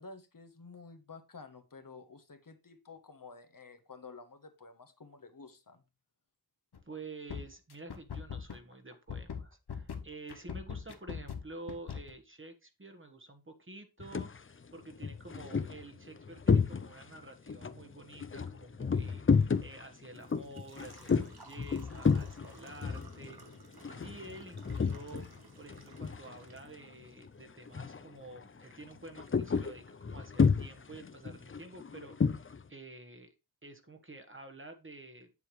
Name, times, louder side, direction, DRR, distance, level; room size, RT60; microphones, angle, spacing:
voice 1, 0.0-5.8, left 4 dB, 60° left, 8 dB, 1.1 m, -51 dB
sound 1, 6.7-6.9 7.3-12.1, left 7 dB, 90° left, 1.0 m, -40 dB
voice 2, 6.8-23.4 23.7-25.3 25.6-32.3 32.7-33.3 33.6-35.3, right 2 dB, 30° right, 5 dB, 1.3 m, -49 dB
sound 2, 14.0-14.4 14.9-17.2 17.5-25.4 25.6-26.7 27.0-27.3 27.7-28.1 28.4-32.6, left 5 dB, 35° left, 0.5 m, -31 dB
Engine / Trickle dribble / Fill (with liquid), 19.5-31.4, right 3 dB, 75° right, 1.4 m, -59 dB
7.8 x 7.2 x 3.2 m, 0.28 s
wide cardioid pair, 55°, 38 cm